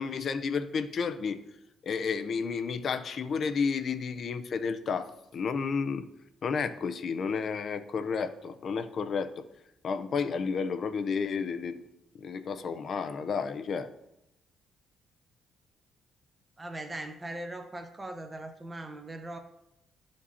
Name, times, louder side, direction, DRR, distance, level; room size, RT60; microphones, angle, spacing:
voice 1, 0.0-1.4 1.8-6.1 6.4-9.4 9.8-11.8 12.1-13.9, left 5 dB, 55° left, 10 dB, 0.5 m, -31 dB
voice 2, 16.6-19.4, right 1 dB, 20° right, 5 dB, 0.7 m, -40 dB
11.5 x 5.2 x 2.8 m, 0.85 s
cardioid pair, 90°, 0 cm